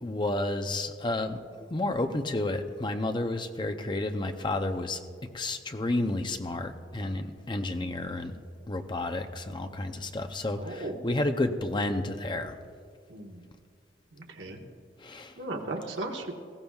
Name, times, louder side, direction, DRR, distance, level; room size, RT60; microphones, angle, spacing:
voice 1, 0.0-5.0 5.3-8.4 8.7-12.5 15.0-15.4, left 2 dB, 25° left, 7 dB, 0.6 m, -31 dB
voice 2, 10.6-11.0 13.1-13.4 14.1-14.6 15.4-16.3, right 2 dB, 80° right, 1 dB, 1.3 m, -37 dB
19.5 x 15.0 x 2.4 m, 2.1 s
head